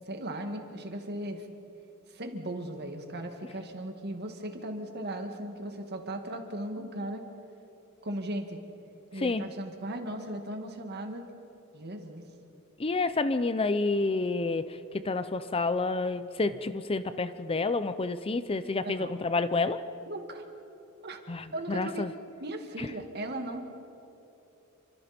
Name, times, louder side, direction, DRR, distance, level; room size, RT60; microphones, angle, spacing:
voice 1, 0.1-1.5 2.1-7.3 8.0-8.6 9.1-11.3 11.7-12.2 18.8-19.2 20.1-20.4 21.0-21.2 21.5-22.1 22.4-23.6, right 1 dB, 50° right, 5 dB, 2.1 m, -37 dB
voice 2, 12.8-14.8 15.0-19.8 21.3-22.1, left 3 dB, 25° left, 12 dB, 0.6 m, -29 dB
29.0 x 25.0 x 4.4 m, 3.0 s
head